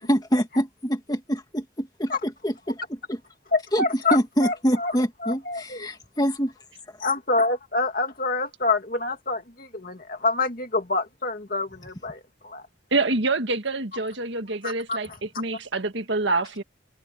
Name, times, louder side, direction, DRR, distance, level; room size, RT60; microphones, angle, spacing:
voice 1, 0.1-2.8 3.1-3.2 3.7-6.5, equal, 20° left, 2.1 m, -25 dB
voice 2, 3.5-5.9 7.0-12.6 14.6-15.2, left 3 dB, 45° left, 2.4 m, -27 dB
voice 3, 12.9-15.1 15.4-16.6, right 3 dB, 65° right, 1.8 m, -26 dB
head